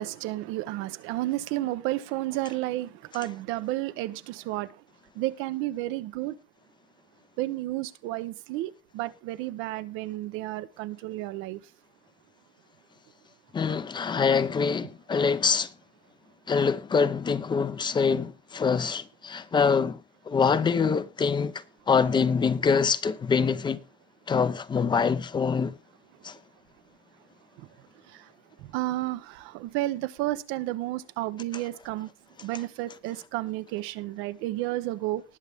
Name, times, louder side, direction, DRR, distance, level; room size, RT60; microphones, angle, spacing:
voice 1, 0.0-4.7 5.2-6.3 7.4-11.6 28.7-32.1 32.4-35.2, right 16 dB, 75° right, 0.9 m, -31 dB
voice 2, 13.5-15.7 16.5-20.0 20.3-21.5 21.9-23.8 24.3-25.7 26.2-26.4, left 5 dB, 20° left, 0.7 m, -24 dB
19.5 x 6.9 x 3.5 m
cardioid pair, 130°, 20 cm